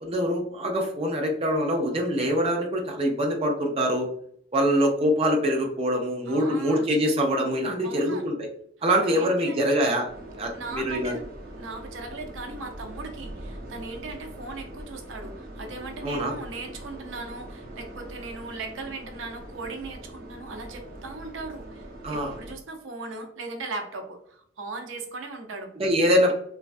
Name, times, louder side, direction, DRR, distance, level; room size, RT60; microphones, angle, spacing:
voice 1, 0.0-4.1 4.5-8.5 8.8-10.1 10.4-11.1 16.0-16.3 22.0-22.3 25.8-26.3, equal, 30° right, 1 dB, 0.4 m, -24 dB
voice 2, 6.3-6.9 7.8-8.2 9.0-9.8 10.5-11.2 11.6-25.7, right 3 dB, 80° right, 4 dB, 0.5 m, -38 dB
sound 1, 10.1-22.5, right 1 dB, 50° right, 0.9 m, -42 dB
3.1 x 2.2 x 2.5 m, 0.67 s
head